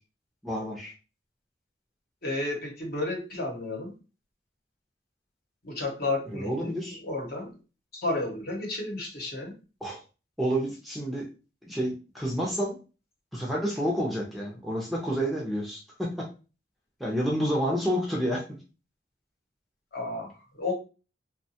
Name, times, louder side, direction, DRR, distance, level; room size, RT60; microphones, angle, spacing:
voice 1, 0.4-0.9 6.3-7.0 9.8-10.0 10.4-11.3 11.7-12.8 13.3-16.3 17.0-18.6, equal, ahead, -3 dB, 0.5 m, -29 dB
voice 2, 2.2-3.9 5.6-6.7 7.0-7.5 7.9-9.5 19.9-20.7, left 2 dB, 55° left, 0 dB, 1.0 m, -32 dB
3.0 x 2.2 x 2.7 m, 0.33 s
head